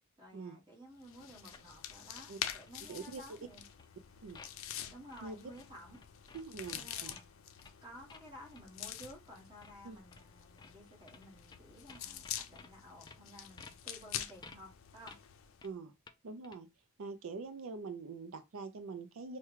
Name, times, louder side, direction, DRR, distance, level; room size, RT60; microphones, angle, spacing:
voice 1, 0.2-3.6 4.9-6.0 6.7-7.3 7.8-15.2, equal, 25° right, 1.5 m, -54 dB
sound 1, 1.0-15.7, left 10 dB, 80° left, 0.4 m, -46 dB
sound 2, 1.5-3.9 4.3-4.5 5.0-5.2 5.5-7.3 7.6-7.7 8.1-8.3 8.5-8.6 9.0-9.1 9.6-9.7 10.1-10.3 10.6-10.7 11.0-11.6 11.9-12.7 13.1-13.2 13.6-13.8 14.4-14.6 15.1-15.2 15.6-15.7 16.1-16.2 16.4-16.6, left 4 dB, 20° left, 0.3 m, -55 dB
voice 2, 2.9-3.4 4.2-4.4 5.2-5.4 6.3-7.2 9.8-10.0 15.6-15.9 16.2-16.7 17.0-19.4, right 4 dB, 85° right, 0.4 m, -44 dB
4.7 x 2.2 x 2.9 m
head